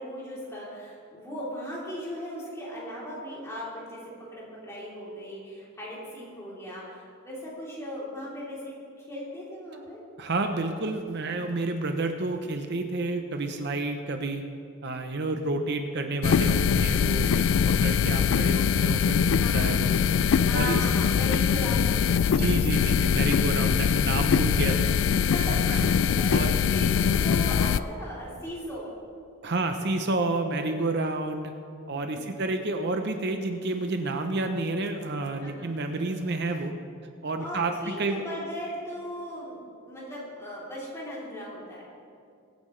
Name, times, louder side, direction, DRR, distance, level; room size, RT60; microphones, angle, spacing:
voice 1, 0.0-4.0 4.3-8.7 9.0-10.0 15.1-15.4 19.3-19.7 20.4-22.4 25.2-28.9 31.9-32.4 35.4-35.7 37.4-41.9, equal, 15° left, -7 dB, 3.4 m, -38 dB
voice 2, 10.2-14.4 14.8-19.9 20.5-20.8 22.3-24.9 25.4-25.9 26.3-26.6 29.4-31.5 31.9-36.7 37.2-38.2, right 2 dB, 50° right, 5 dB, 0.7 m, -30 dB
sound 1, 16.2-27.8, left 7 dB, 65° left, 0.3 m, -23 dB
23.5 x 9.3 x 3.3 m, 2.4 s
head